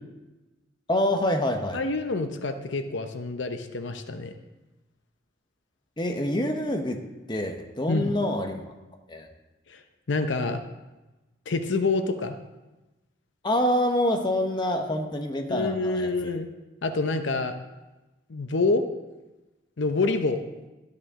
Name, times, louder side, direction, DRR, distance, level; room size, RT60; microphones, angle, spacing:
voice 1, 0.9-1.8 6.0-7.0 7.3-8.6 9.1-9.3 13.4-16.1, left 1 dB, 25° left, 4 dB, 0.9 m, -26 dB
voice 2, 1.7-4.3 7.9-8.1 9.7-9.8 10.1-10.6 11.5-12.4 15.5-16.5 16.8-17.6 18.3-18.8 19.8-20.5, left 3 dB, 75° left, 8 dB, 0.7 m, -27 dB
12.5 x 9.6 x 3.7 m, 1.1 s
head